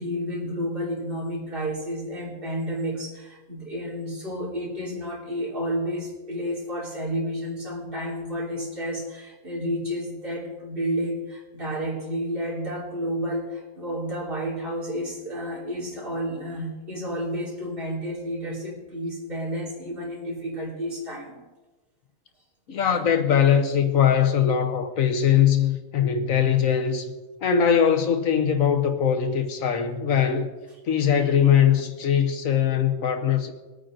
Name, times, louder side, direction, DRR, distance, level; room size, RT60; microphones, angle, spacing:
voice 1, 0.0-21.4 31.3-31.5, equal, 40° right, 3.5 m, -31 dB
voice 2, 22.7-27.1 27.4-30.5 30.9-33.5, left 8 dB, 85° left, 1.5 m, -21 dB
21.5 x 9.0 x 3.9 m
omnidirectional pair, 1.4 m